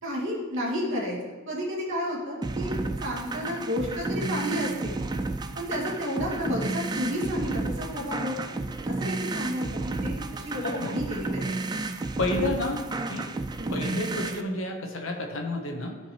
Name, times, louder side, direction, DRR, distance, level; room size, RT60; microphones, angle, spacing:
voice 1, 0.0-5.0 5.5-8.6 9.0-11.6 13.6-13.7, equal, 65° right, -5 dB, 2.3 m, -32 dB
sound 1, 2.4-14.4, right 2 dB, 20° right, 0.3 m, -32 dB
voice 2, 10.5-11.0 12.2-13.3 13.7-16.0, left 2 dB, 75° left, 2 dB, 1.2 m, -30 dB
13.5 x 5.0 x 3.2 m, 1.3 s
head